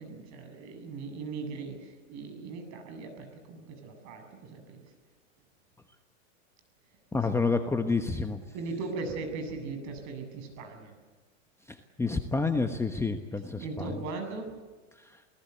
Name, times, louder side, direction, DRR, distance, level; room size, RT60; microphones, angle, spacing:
voice 1, 0.0-4.8 8.5-10.9 13.6-14.5, right 4 dB, 45° right, 6 dB, 7.6 m, -39 dB
voice 2, 7.1-8.4 11.6-14.0 14.9-15.2, left 4 dB, 5° left, 6 dB, 1.1 m, -29 dB
29.0 x 18.5 x 8.3 m, 1.4 s
hypercardioid pair, 125°, 39 cm